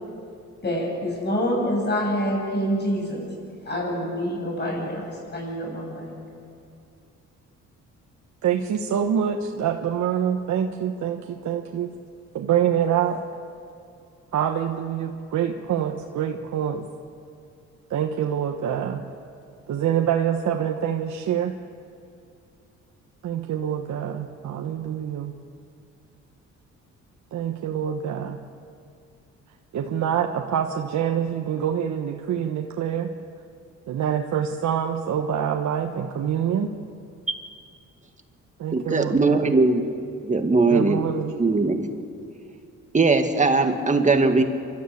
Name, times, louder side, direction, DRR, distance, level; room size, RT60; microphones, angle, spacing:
voice 1, 0.6-3.3 3.7-6.1, equal, 35° left, -1 dB, 7.5 m, -26 dB
voice 2, 8.4-11.9 12.3-13.2 14.3-16.8 17.9-19.0 19.7-21.6 23.2-25.3 27.3-28.4 29.7-33.1 33.9-36.7 38.6-39.5 40.7-41.3, right 9 dB, 65° right, 3 dB, 1.3 m, -26 dB
voice 3, 38.7-39.8 40.2-41.0 41.4-41.9 42.9-44.4, right 3 dB, 25° right, 5 dB, 2.0 m, -20 dB
28.5 x 13.0 x 8.6 m, 2.4 s
cardioid pair, 90°, 30 cm